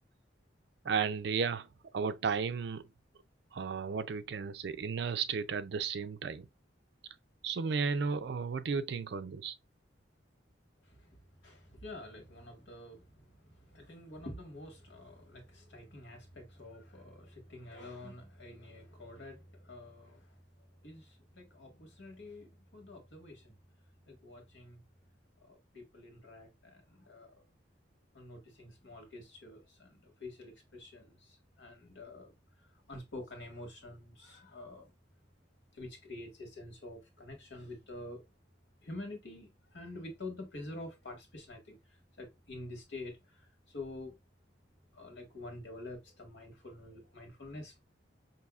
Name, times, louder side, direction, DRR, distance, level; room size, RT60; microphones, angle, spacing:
voice 1, 0.8-2.9 3.5-6.5 7.4-9.5, right 5 dB, 60° right, 0.4 m, -34 dB
voice 2, 11.4-20.3 20.8-23.5 24.1-24.8 25.4-27.4 28.1-32.3 32.6-34.9 35.7-38.2 38.8-41.8 42.2-44.1 44.9-47.8, left 2 dB, 75° left, 1.5 m, -48 dB
5.5 x 2.7 x 2.3 m
head